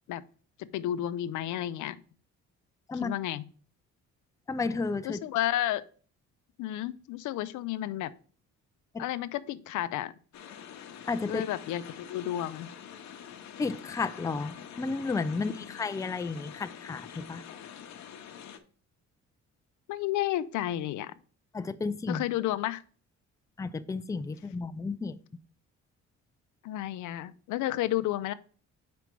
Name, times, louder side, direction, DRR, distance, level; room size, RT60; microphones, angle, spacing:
voice 1, 0.6-2.0 3.0-3.4 5.0-5.8 6.6-8.1 9.0-10.1 11.3-12.7 15.4-15.6 19.9-21.1 22.1-22.8 26.6-28.3, left 13 dB, 80° left, 0.5 m, -32 dB
voice 2, 4.5-5.2 8.9-9.0 11.1-11.4 13.6-17.4 21.5-22.2 23.6-25.2, left 4 dB, 10° left, 0.4 m, -32 dB
sound 1, 10.3-18.6, left 9 dB, 65° left, 0.9 m, -46 dB
5.7 x 5.2 x 4.5 m
cardioid pair, 90°, 30 cm